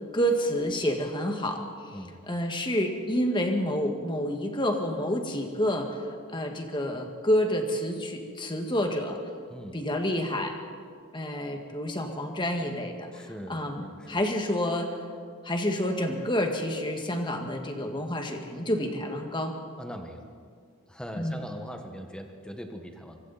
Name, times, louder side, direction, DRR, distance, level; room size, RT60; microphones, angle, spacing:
voice 1, 0.1-2.0 2.3-6.0 6.3-9.2 9.7-10.6 11.1-13.2 13.5-15.0 15.4-19.6 21.2-21.5, equal, 20° left, 3 dB, 1.9 m, -29 dB
voice 2, 13.1-14.2 19.8-20.2 20.9-23.2, equal, 5° left, 4 dB, 1.5 m, -41 dB
24.5 x 24.5 x 4.3 m, 2.1 s
head